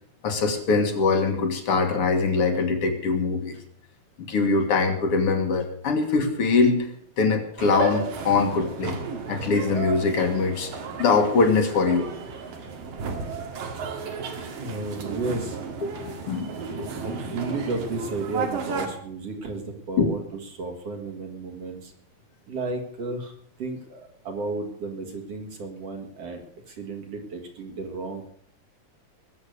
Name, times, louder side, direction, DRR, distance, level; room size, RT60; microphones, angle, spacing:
voice 1, 0.2-3.6 4.3-6.9 7.2-9.0 9.3-10.7 11.0-12.1 14.6-14.7 15.8-16.9 20.0-20.1, left 4 dB, 45° left, 5 dB, 2.2 m, -23 dB
sound 1, 7.6-18.9, right 4 dB, 70° right, 3.6 m, -33 dB
voice 2, 12.7-13.2 14.6-15.6 16.7-21.9 22.5-26.4 26.7-28.3, right 3 dB, 45° right, 3 dB, 2.7 m, -33 dB
21.0 x 7.8 x 6.7 m, 0.64 s
omnidirectional pair, 4.2 m